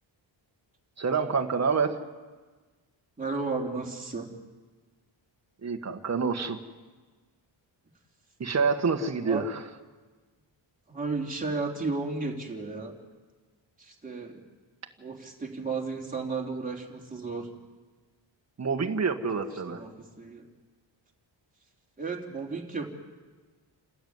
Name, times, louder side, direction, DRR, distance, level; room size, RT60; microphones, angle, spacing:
voice 1, 1.0-2.0 5.6-6.6 8.4-9.6 18.6-19.8, right 5 dB, 35° right, 5 dB, 1.6 m, -27 dB
voice 2, 3.2-4.3 9.2-9.5 10.9-12.9 13.8-14.4 15.0-17.5 19.3-20.5 22.0-22.9, right 3 dB, 15° right, 0 dB, 3.3 m, -34 dB
29.0 x 13.0 x 9.5 m, 1.4 s
wide cardioid pair, 125°, 46 cm